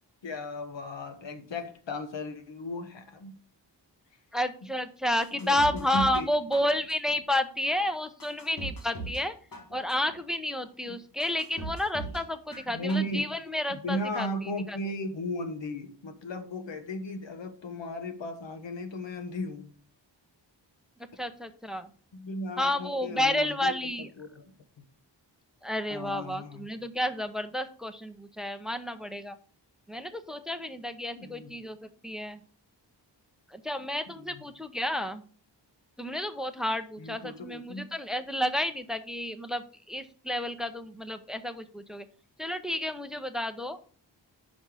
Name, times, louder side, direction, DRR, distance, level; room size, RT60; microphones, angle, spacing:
voice 1, 0.2-3.3 5.3-6.3 10.8-11.0 12.7-13.3 13.7-19.7 22.1-23.7 24.0-24.8 25.9-26.7 31.1-31.5 34.1-34.4 37.0-37.8, left 1 dB, 80° left, 7 dB, 1.2 m, -36 dB
voice 2, 4.3-9.3 9.7-14.3 14.7-14.8 21.2-21.9 22.6-24.1 25.6-29.4 29.9-31.8 32.0-32.4 33.5-35.2 36.0-42.1 42.4-43.8, left 1 dB, ahead, 10 dB, 0.5 m, -31 dB
sound 1, 5.2-6.3 6.5-7.1 7.6-7.7 8.2-9.2 9.5-10.1 10.6-10.7 11.2-12.2 12.5-13.1 13.5-13.6, right 2 dB, 50° left, 1.7 m, -40 dB
5.4 x 5.3 x 6.1 m, 0.43 s
wide cardioid pair, 130°, 44 cm